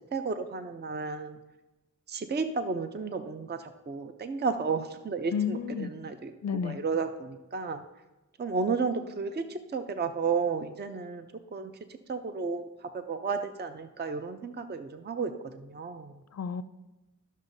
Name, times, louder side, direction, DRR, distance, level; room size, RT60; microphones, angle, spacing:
voice 1, 0.1-1.4 2.1-7.8 8.4-11.3 11.5-11.7 12.1-12.7 12.9-16.1, right 5 dB, 30° right, 9 dB, 0.5 m, -32 dB
voice 2, 5.3-5.9 6.4-6.8 16.3-16.6, left 6 dB, 55° left, 14 dB, 0.5 m, -31 dB
12.5 x 6.4 x 2.6 m, 1.1 s
wide cardioid pair, 55°, 33 cm